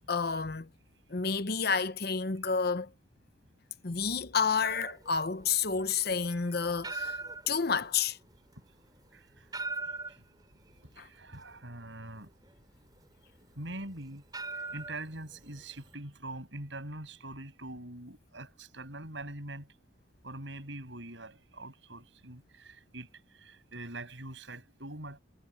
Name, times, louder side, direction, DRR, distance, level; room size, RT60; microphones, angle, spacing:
voice 1, 0.1-0.7 1.1-2.9 3.8-7.2 7.5-8.2 11.0-11.1, left 5 dB, 55° left, 0.9 m, -30 dB
sound 1, 4.6-15.9, right 3 dB, 20° right, 5.2 m, -42 dB
voice 2, 9.1-9.5 9.8-10.2 10.8-12.3 13.5-19.7 20.2-25.2, right 2 dB, 70° right, 7.9 m, -44 dB
head